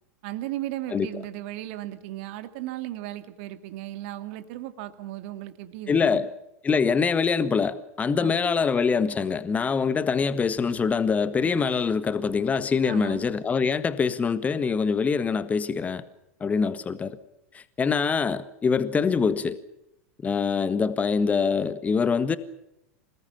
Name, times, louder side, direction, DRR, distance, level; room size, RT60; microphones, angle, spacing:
voice 1, 0.2-6.3 8.2-8.4 12.8-13.3, right 14 dB, 55° right, 2.2 m, -36 dB
voice 2, 5.9-6.3 6.6-16.0 16.4-17.2 17.5-19.6 20.2-22.4, left 5 dB, 20° left, 1.5 m, -24 dB
27.5 x 20.0 x 7.3 m
figure-of-eight pair, 85°, 7 cm